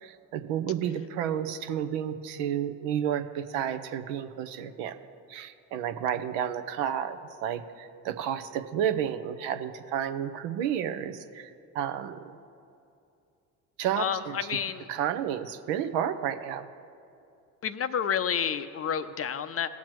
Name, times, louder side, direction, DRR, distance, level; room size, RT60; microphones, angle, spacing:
voice 1, 0.0-4.9 5.3-12.4 13.8-14.4 14.9-16.7, right 9 dB, 70° right, 10 dB, 0.8 m, -31 dB
voice 2, 14.0-14.9 17.6-19.7, left 8 dB, 35° left, 11 dB, 0.5 m, -30 dB
18.0 x 7.3 x 3.1 m, 2.6 s
hypercardioid pair, 60°, 45 cm